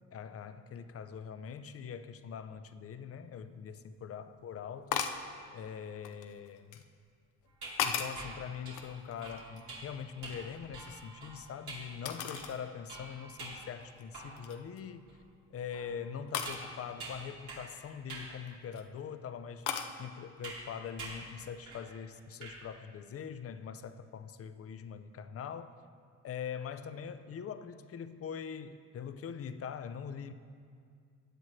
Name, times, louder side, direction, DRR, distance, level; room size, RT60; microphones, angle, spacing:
voice 1, 0.1-5.1 5.5-6.8 7.8-15.1 15.5-19.7 20.0-25.7 26.2-30.3, left 7 dB, 50° left, 0.6 m, -43 dB
sound 1, 3.4-3.5 4.9-5.3 6.0-6.8 7.4-8.3 8.7-9.8 10.1-11.4 12.1-12.6 13.1-13.2 13.8-14.0 14.4-14.8 16.3-16.6 18.3-18.8 19.7-19.9, left 8 dB, 90° left, 0.7 m, -37 dB
sound 2, 7.5-14.6 15.1-15.2 15.7-17.8 18.1-18.3 19.0-19.1 20.4-20.7 21.0-21.3 21.7-21.9 22.2-22.6, right 2 dB, 80° right, 2.6 m, -47 dB
15.5 x 9.3 x 3.2 m
cardioid pair, 90°, 30 cm